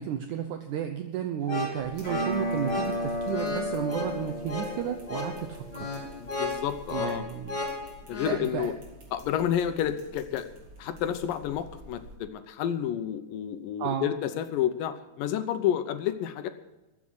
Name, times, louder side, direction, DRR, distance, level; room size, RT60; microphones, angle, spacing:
voice 1, 0.0-5.9 6.9-7.6 8.3-8.7 13.8-14.1, right 9 dB, 70° right, 7 dB, 2.0 m, -33 dB
sound 1, 1.4-8.4, left 2 dB, 30° left, 3.1 m, -35 dB
sound 2, 1.8-12.1, right 1 dB, 35° right, 4.1 m, -50 dB
sound 3, 2.0-7.0, equal, 10° right, 4.0 m, -34 dB
voice 2, 6.2-7.3 8.1-8.7 9.1-10.5 10.8-16.5, left 10 dB, 75° left, 10 dB, 2.4 m, -30 dB
14.5 x 7.5 x 9.6 m, 1.1 s
omnidirectional pair, 4.1 m